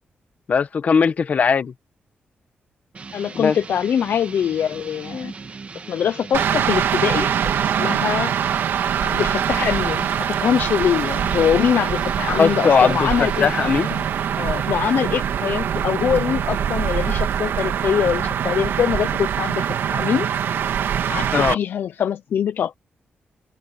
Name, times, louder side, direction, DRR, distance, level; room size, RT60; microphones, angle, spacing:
voice 1, 0.5-1.7 3.3-3.6 12.3-14.1 21.3-21.6, left 6 dB, 45° left, 1.3 m, -19 dB
sound 1, 2.9-15.5, right 4 dB, 35° right, 1.8 m, -39 dB
voice 2, 3.1-5.3 5.9-7.3 7.6-8.3 9.0-13.5 14.4-20.3 21.1-22.8, left 8 dB, 70° left, 0.7 m, -23 dB
sound 2, 6.3-21.5, right 8 dB, 90° right, 2.0 m, -23 dB
wide cardioid pair, 155°, 4 cm